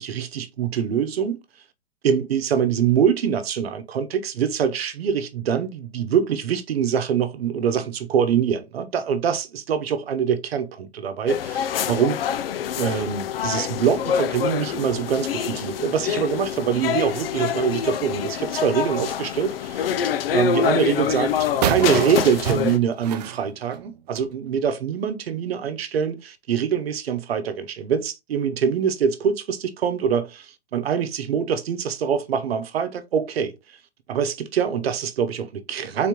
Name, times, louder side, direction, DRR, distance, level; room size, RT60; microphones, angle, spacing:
voice 1, 0.0-1.4 2.0-12.2 12.8-20.0 20.3-33.5 34.1-36.1, right 7 dB, 65° right, 0.9 m, -24 dB
sound 1, 11.3-22.8, left 9 dB, 60° left, 0.5 m, -26 dB
sound 2, 21.6-24.3, right 9 dB, 40° right, 0.5 m, -28 dB
4.0 x 3.6 x 3.0 m
hypercardioid pair, 135°, 32 cm